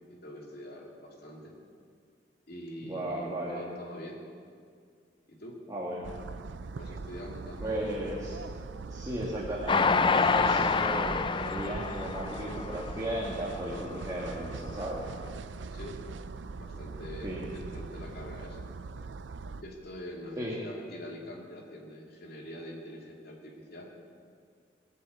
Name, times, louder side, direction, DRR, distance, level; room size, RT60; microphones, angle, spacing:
voice 1, 0.1-1.5 2.5-4.2 5.3-5.6 6.8-7.8 15.7-16.0 16.6-18.6 19.0-19.1 19.5-23.9, equal, 60° left, -1 dB, 2.8 m, -44 dB
voice 2, 2.8-3.7 5.7-6.2 7.6-8.4 8.9-15.0 17.2-17.4 20.4-20.6, right 1 dB, 20° right, -5 dB, 2.0 m, -35 dB
sound 1, 6.0-19.6, right 4 dB, 85° right, 0.5 m, -41 dB
Train, 9.7-13.1 13.6-13.7 14.0-14.1, left 4 dB, 30° left, 0.4 m, -27 dB
19.5 x 7.8 x 8.4 m, 2.2 s
head